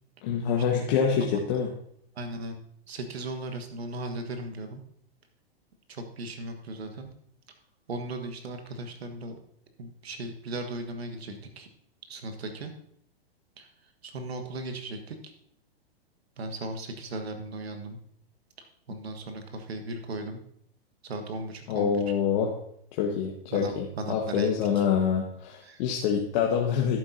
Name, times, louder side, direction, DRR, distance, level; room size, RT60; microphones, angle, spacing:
voice 1, 0.2-1.7 21.7-22.5 22.9-27.0, left 7 dB, 50° left, -1 dB, 1.4 m, -26 dB
voice 2, 2.1-2.5 2.9-4.8 5.9-7.1 7.9-9.4 9.8-11.7 12.1-12.7 13.6-13.7 14.0-15.3 16.4-18.0 18.9-20.4 21.0-22.0 23.5-24.5 24.7-24.8 25.6-25.8, right 2 dB, 80° right, 6 dB, 1.5 m, -37 dB
13.5 x 7.7 x 2.8 m, 0.68 s
hypercardioid pair, 120°, 31 cm